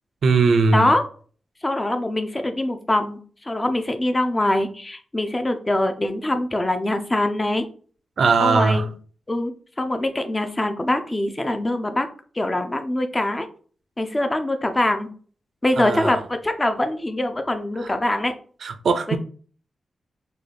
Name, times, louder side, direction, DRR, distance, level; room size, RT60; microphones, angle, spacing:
voice 1, 0.2-0.9 8.2-8.9 15.8-16.1 18.6-19.2, right 4 dB, 65° right, 0.4 m, -19 dB
voice 2, 1.6-3.2 3.4-7.7 8.4-8.9 9.3-12.1 12.4-13.5 14.0-15.1 15.6-18.3, left 1 dB, 20° left, 0.4 m, -23 dB
3.8 x 2.2 x 3.3 m
wide cardioid pair, 105°, 0 cm